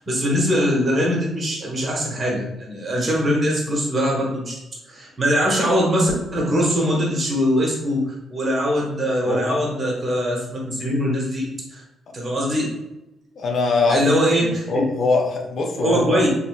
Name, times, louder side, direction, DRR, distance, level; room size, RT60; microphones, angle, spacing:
voice 1, 0.1-4.5 4.9-11.4 11.7-11.8 12.1-12.7 13.9-14.8 15.8-16.3, equal, 40° right, -3 dB, 0.9 m, -22 dB
voice 2, 9.3-9.6 12.1-12.2 13.4-14.1 14.4-16.2, left 3 dB, 60° left, 0 dB, 0.5 m, -22 dB
3.2 x 2.6 x 2.2 m, 0.95 s
cardioid pair, 85°, 0 cm